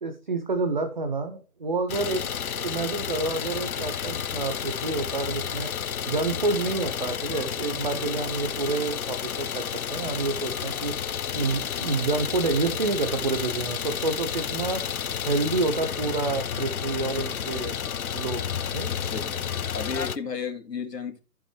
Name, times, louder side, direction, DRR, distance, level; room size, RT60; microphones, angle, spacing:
voice 1, 0.0-2.2 2.5-5.7 6.1-9.6 9.9-10.9 11.3-14.8 15.2-17.8 18.1-18.4 18.7-18.9, right 3 dB, 30° right, 0.6 m, -28 dB
Idling, 1.9-20.2, left 8 dB, 60° left, 0.7 m, -31 dB
voice 2, 18.9-21.2, left 5 dB, 80° left, 2.6 m, -34 dB
14.5 x 5.4 x 3.2 m
figure-of-eight pair, 155°, 48 cm